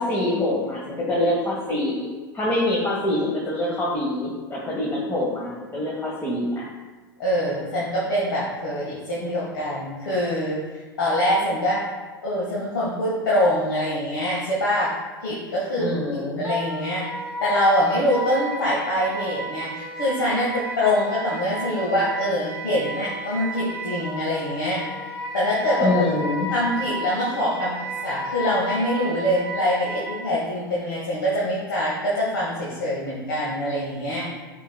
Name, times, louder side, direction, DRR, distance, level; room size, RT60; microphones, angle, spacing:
voice 1, 0.0-2.1 2.3-6.7 15.8-16.4 25.8-26.5, left 1 dB, 20° left, -4 dB, 1.4 m, -25 dB
voice 2, 7.2-11.8 12.2-14.9 15.2-17.0 17.4-24.8 25.3-26.0 26.5-27.7 28.0-34.2, left 1 dB, 65° left, -6 dB, 1.6 m, -24 dB
Wind instrument woodwind instrument, 16.4-30.2, right 1 dB, 10° right, 1.9 m, -33 dB
8.9 x 5.0 x 2.3 m, 1.3 s
figure-of-eight pair, 85°, 12 cm